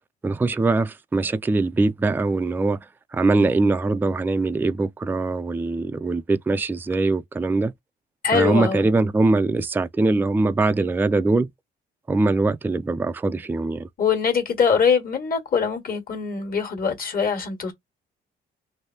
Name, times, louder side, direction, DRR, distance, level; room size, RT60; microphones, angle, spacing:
voice 1, 0.2-2.8 3.1-7.7 8.3-11.5 12.1-13.9, right 3 dB, 10° right, 0.3 m, -22 dB
voice 2, 8.2-8.9 14.0-17.7, left 6 dB, 50° left, 1.6 m, -22 dB
3.2 x 2.7 x 2.7 m
cardioid pair, 90°, 20 cm